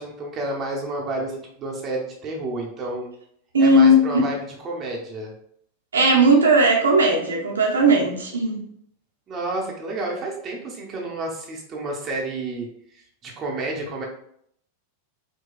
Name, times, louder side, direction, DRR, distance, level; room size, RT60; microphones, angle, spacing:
voice 1, 0.0-3.1 3.6-5.3 9.3-14.1, right 2 dB, 25° right, -1 dB, 0.9 m, -30 dB
voice 2, 3.5-4.0 5.9-8.6, right 1 dB, 70° right, 0 dB, 0.8 m, -17 dB
4.5 x 2.3 x 2.4 m, 0.67 s
figure-of-eight pair, 90°, 0 cm